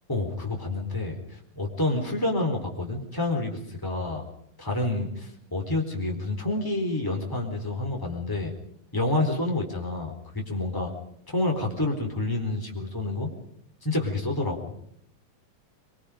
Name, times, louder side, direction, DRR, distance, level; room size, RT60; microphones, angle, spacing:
voice 1, 0.1-4.3 4.6-8.5 8.9-10.9 11.3-13.3 13.8-14.7, left 2 dB, 5° left, 1 dB, 3.9 m, -28 dB
24.0 x 23.5 x 5.1 m, 0.69 s
omnidirectional pair, 4.1 m